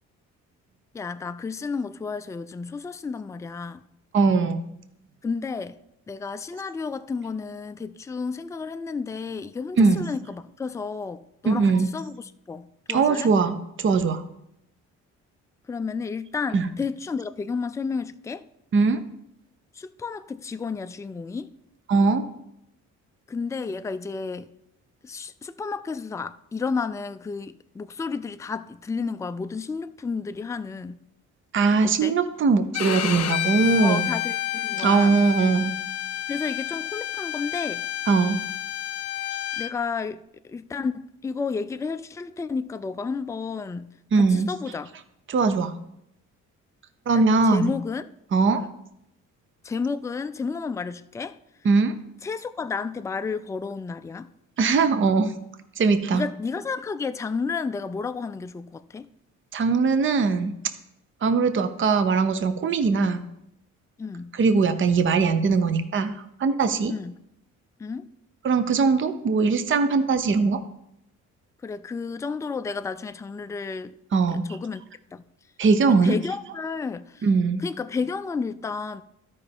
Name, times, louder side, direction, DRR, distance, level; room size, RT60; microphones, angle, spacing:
voice 1, 0.9-3.9 5.2-5.8 6.1-13.3 15.7-18.5 19.8-21.5 23.3-24.5 25.0-31.0 31.8-32.1 33.8-35.2 36.3-37.8 39.6-43.9 44.1-44.9 47.1-48.1 48.5-48.7 49.6-51.4 52.2-54.3 56.1-59.1 64.0-64.3 66.9-67.2 67.8-68.1 71.6-73.9 74.3-74.8 75.1-75.2 75.9-77.3 77.6-79.0, left 5 dB, 10° left, 0.3 m, -31 dB
voice 2, 4.1-4.6 9.8-10.0 11.4-11.9 12.9-14.2 16.5-16.7 18.7-19.0 21.9-22.3 31.5-34.1 34.8-35.7 38.1-38.4 44.1-44.5 45.3-45.7 47.1-47.7 48.3-48.6 51.6-51.9 54.6-55.3 55.8-56.2 59.5-60.5 61.2-63.2 64.3-66.9 68.4-70.6 74.1-74.5 75.6-76.2 77.2-77.6, right 4 dB, 40° right, 0.7 m, -21 dB
Bowed string instrument, 32.7-39.7, left 13 dB, 60° left, 0.6 m, -30 dB
13.0 x 5.4 x 3.5 m
cardioid pair, 90°, 30 cm